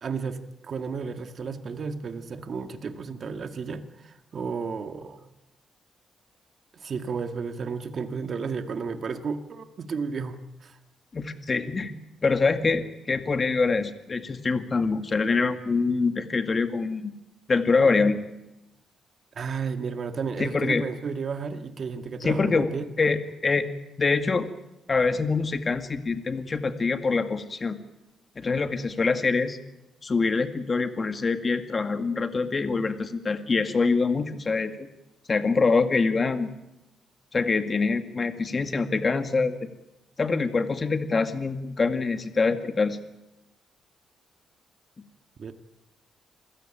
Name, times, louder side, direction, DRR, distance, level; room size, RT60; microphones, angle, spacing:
voice 1, 0.0-5.2 6.7-10.8 19.4-22.9 45.4-45.5, right 5 dB, 50° right, 8 dB, 1.9 m, -33 dB
voice 2, 11.1-11.9 12.2-17.1 17.5-18.2 20.4-20.8 22.2-22.7 23.0-23.7 24.0-24.5 24.9-27.8 28.4-29.6 30.0-34.9 35.3-36.5 37.3-39.6 40.2-43.0, left 4 dB, 35° left, 8 dB, 2.0 m, -25 dB
26.5 x 16.0 x 9.0 m, 0.94 s
cardioid pair, 105°, 0 cm